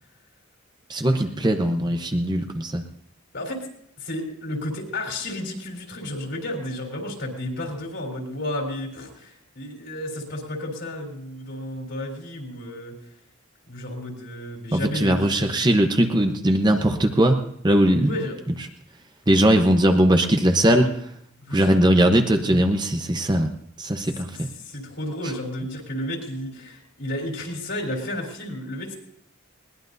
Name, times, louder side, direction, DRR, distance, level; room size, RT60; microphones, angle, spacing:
voice 1, 0.9-2.8 14.7-17.4 17.6-18.1 19.3-20.9 21.5-23.5 23.8-24.5, right 1 dB, 20° right, 5 dB, 0.8 m, -20 dB
voice 2, 3.3-3.7 4.0-13.0 13.7-15.5 18.0-18.4 21.4-21.7 24.2-28.9, left 1 dB, 55° left, 1 dB, 3.7 m, -32 dB
21.0 x 19.0 x 2.7 m, 0.71 s
head